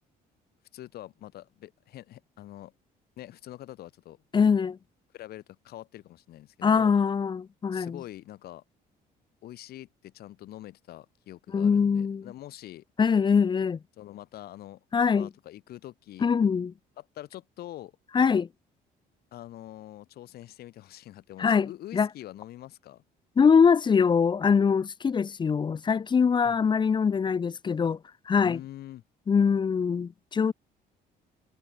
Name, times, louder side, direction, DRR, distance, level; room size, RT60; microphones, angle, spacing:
voice 1, 0.7-2.7 3.2-4.2 5.1-6.9 7.7-8.6 9.4-12.8 14.0-14.8 15.1-16.3 17.0-17.9 19.3-23.0 26.4-26.6 28.4-29.0, left 14 dB, 65° left, 1.5 m, -44 dB
voice 2, 4.3-4.8 6.6-8.0 11.5-12.3 13.0-13.8 14.9-15.3 16.2-16.7 18.1-18.5 21.4-22.1 23.4-28.0 28.3-28.6 29.3-30.5, left 6 dB, 25° left, 0.7 m, -23 dB
cardioid pair, 110°, 17 cm